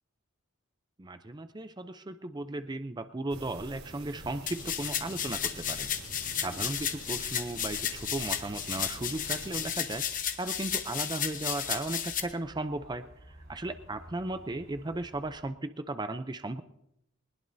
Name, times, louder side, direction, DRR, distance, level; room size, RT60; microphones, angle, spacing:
voice 1, 1.0-5.9 6.4-16.6, right 2 dB, 20° right, 10 dB, 0.5 m, -36 dB
sound 1, 3.3-9.7, right 1 dB, 85° right, 3.8 m, -47 dB
sound 2, 4.5-12.2, left 9 dB, 40° left, 1.0 m, -33 dB
sound 3, 5.8-15.5, equal, 50° right, 5.1 m, -54 dB
20.5 x 20.0 x 2.7 m, 0.81 s
head